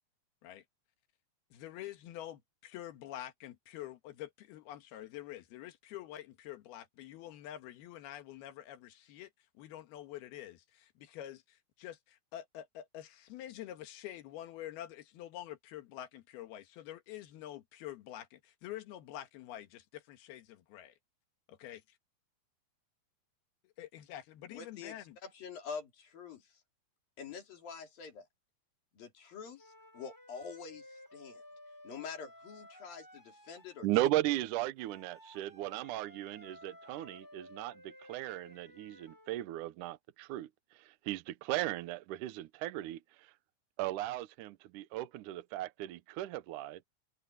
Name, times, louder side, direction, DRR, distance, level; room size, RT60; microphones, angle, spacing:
voice 1, 1.5-20.9 21.5-21.8 23.6-25.2, left 12 dB, 85° left, 3.4 m, -47 dB
voice 2, 24.5-25.0 25.2-26.5 27.2-28.3 28.9-31.4 31.8-33.9, left 6 dB, 70° left, 5.1 m, -46 dB
sound 1, 29.6-33.9 34.8-39.4, left 1 dB, 5° left, 5.6 m, -55 dB
voice 3, 33.8-40.5 41.1-43.0 43.8-46.8, right 15 dB, 75° right, 2.0 m, -36 dB
omnidirectional pair, 4.3 m